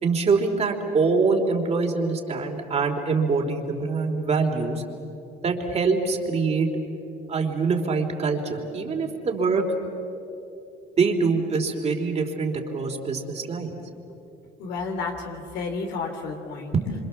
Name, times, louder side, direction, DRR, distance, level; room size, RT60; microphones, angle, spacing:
voice 1, 0.0-4.8 5.4-6.7 7.3-9.7 11.0-13.8 16.7-17.0, right 4 dB, 40° right, 2 dB, 3.4 m, -24 dB
voice 2, 14.6-16.7, left 4 dB, 85° left, 3 dB, 2.9 m, -31 dB
26.5 x 26.0 x 7.3 m, 2.9 s
cardioid pair, 110°, 17 cm